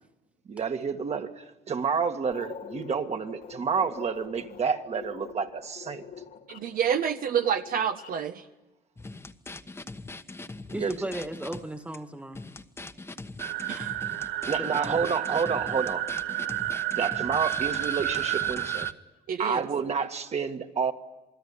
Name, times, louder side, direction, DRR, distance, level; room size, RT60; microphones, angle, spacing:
voice 1, 0.5-6.0 10.7-11.1 14.5-16.1 16.9-18.9 19.4-20.9, right 6 dB, 40° right, 6 dB, 2.0 m, -29 dB
sound 1, 2.3-8.3, left 7 dB, 55° left, 2.3 m, -45 dB
voice 2, 6.5-8.4 13.7-13.9 19.3-19.6, right 8 dB, 55° right, 6 dB, 1.2 m, -28 dB
sound 2, 9.0-11.6 11.9-12.0 12.3-18.9, left 2 dB, 15° left, 1.3 m, -41 dB
voice 3, 10.7-12.4 14.6-15.1, right 1 dB, 5° right, 8 dB, 1.8 m, -36 dB
sound 3, 13.4-18.9, right 13 dB, 85° right, 1.0 m, -31 dB
28.0 x 20.5 x 9.9 m, 1.0 s
cardioid pair, 110°, 17 cm